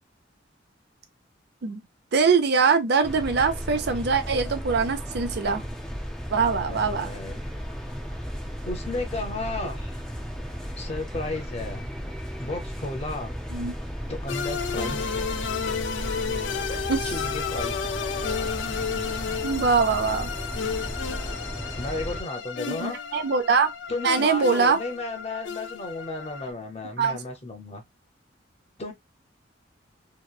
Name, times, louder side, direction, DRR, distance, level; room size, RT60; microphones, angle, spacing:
voice 1, 2.1-5.6 6.3-7.1 13.5-13.7 16.9-17.0 19.4-20.3 22.7-23.7 24.0-24.8 27.0-27.2, right 5 dB, 60° right, 0.5 m, -23 dB
sound 1, 3.0-22.2, equal, 5° left, 0.5 m, -35 dB
voice 2, 6.6-7.4 8.6-10.0 10.8-11.8 12.4-13.3 14.1-15.3 16.6-17.9 21.8-23.0 23.9-27.8 28.8-28.9, left 2 dB, 35° left, 0.8 m, -34 dB
sound 2, 14.3-26.5, left 6 dB, 80° left, 0.4 m, -32 dB
2.9 x 2.2 x 2.2 m
head